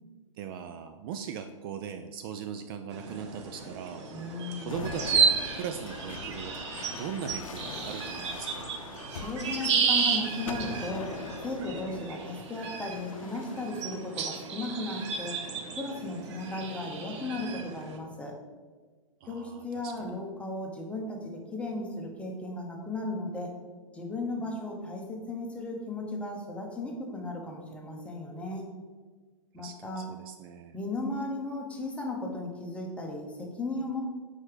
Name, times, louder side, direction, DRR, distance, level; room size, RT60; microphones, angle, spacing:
voice 1, 0.4-4.1 4.7-6.7 7.0-8.7 19.2-20.2 29.6-30.8, right 7 dB, 45° right, 7 dB, 0.4 m, -39 dB
sound 1, 2.9-18.0, right 5 dB, 60° right, 0.9 m, -33 dB
voice 2, 4.1-4.7 9.1-11.2 11.4-15.4 15.8-18.3 19.3-23.5 23.9-28.6 29.5-30.1 30.7-34.0, left 2 dB, 5° left, 0 dB, 1.0 m, -36 dB
sound 2, 4.7-14.1 14.8-15.3 16.4-17.1, left 5 dB, 75° left, 0.6 m, -43 dB
4.8 x 4.3 x 4.8 m, 1.4 s
hypercardioid pair, 120°, 17 cm